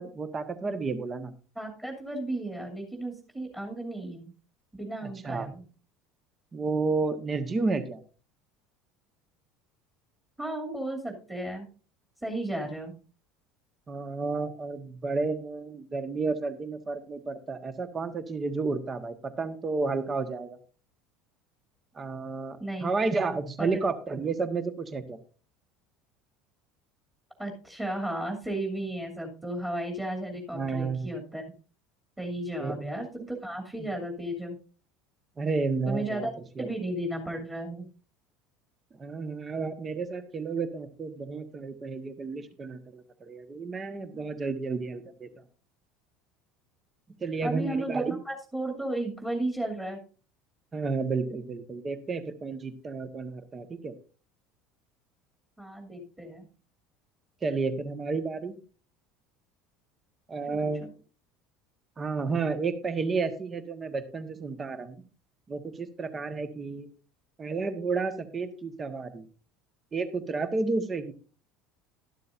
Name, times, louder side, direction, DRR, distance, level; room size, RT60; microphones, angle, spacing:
voice 1, 0.0-1.3 5.0-5.5 6.5-8.0 13.9-20.6 21.9-25.2 30.5-31.1 32.6-32.8 33.8-33.9 35.4-36.3 36.6-36.7 39.0-45.3 47.2-48.2 50.7-53.9 57.4-58.5 60.3-60.9 62.0-65.0 65.5-66.9 67.4-69.2 69.9-71.1, right 4 dB, 25° right, 11 dB, 1.4 m, -31 dB
voice 2, 1.5-4.3 4.7-5.6 10.4-11.7 12.2-12.9 22.6-22.9 23.6-23.8 27.4-31.4 32.2-34.5 35.8-36.3 36.6-37.9 47.4-50.0 55.6-56.5 60.5-60.9, right 1 dB, 10° right, 1 dB, 2.7 m, -34 dB
12.0 x 12.0 x 2.6 m, 0.37 s
figure-of-eight pair, 70°, 0 cm